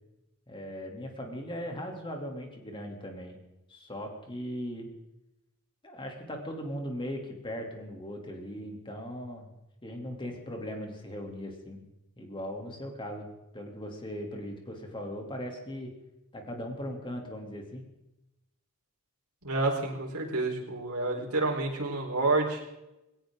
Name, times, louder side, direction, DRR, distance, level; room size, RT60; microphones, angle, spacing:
voice 1, 0.5-3.4 3.7-4.9 5.8-9.5 9.8-11.8 12.2-13.3 13.5-15.9 16.3-17.8, equal, 20° left, 2 dB, 3.1 m, -38 dB
voice 2, 19.4-22.6, right 2 dB, 75° right, -1 dB, 4.4 m, -29 dB
21.0 x 17.5 x 3.9 m, 0.93 s
head